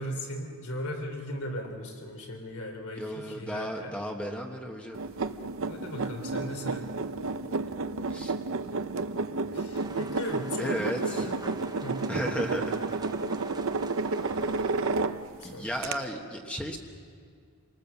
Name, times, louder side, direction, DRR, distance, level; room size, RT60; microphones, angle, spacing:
voice 1, 0.0-3.9 5.7-6.9 9.5-12.1 15.4-15.7, equal, 75° left, 3 dB, 3.6 m, -37 dB
voice 2, 3.0-5.0 8.1-8.3 10.6-11.3 12.1-12.7 15.4-16.8, equal, 5° left, 1 dB, 1.3 m, -34 dB
sound 1, 4.9-15.4 15.8-15.9, right 3 dB, 60° right, 0.7 m, -31 dB
sound 2, 9.7-15.0, right 3 dB, 20° right, 0.8 m, -46 dB
27.0 x 19.5 x 7.3 m, 2.1 s
head